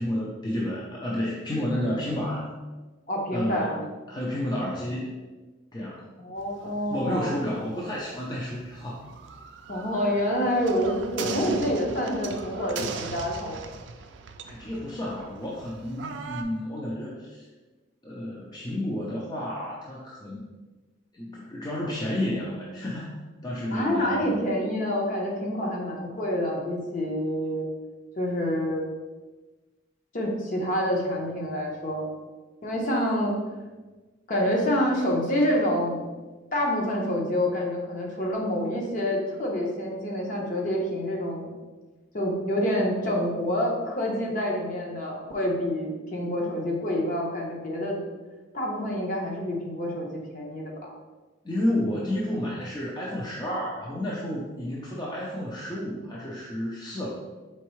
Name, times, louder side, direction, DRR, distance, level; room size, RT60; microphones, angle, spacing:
voice 1, 0.0-2.5 3.3-3.8 4.1-5.1 5.7-6.1 6.9-9.0 14.5-17.4 18.0-20.5 21.1-24.4 51.4-57.1, left 1 dB, 20° left, -5 dB, 0.5 m, -31 dB
voice 2, 3.1-3.8 6.2-7.3 9.7-13.7 23.7-27.7 28.2-28.8 30.1-32.1 32.6-33.4 34.3-36.1 36.5-41.5 42.1-48.0 48.5-50.9, equal, 40° left, -1 dB, 0.8 m, -27 dB
sound 1, 6.4-16.4, right 5 dB, 65° right, 0.4 m, -40 dB
4.5 x 3.5 x 3.0 m, 1.2 s
head